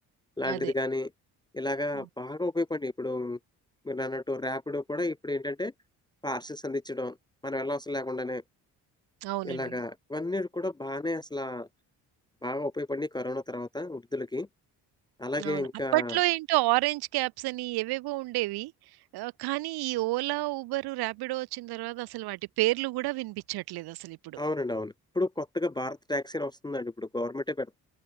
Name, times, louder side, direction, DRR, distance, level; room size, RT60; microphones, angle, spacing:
voice 1, 0.4-1.1 1.5-3.4 3.8-5.7 6.2-7.2 7.4-8.4 9.4-11.7 12.4-14.5 15.2-16.2 24.4-27.8, left 2 dB, 10° left, 0.4 m, -32 dB
voice 2, 9.2-9.8 15.4-18.7 19.1-24.4, right 19 dB, 60° right, 0.5 m, -30 dB
open air
hypercardioid pair, 50°, 45 cm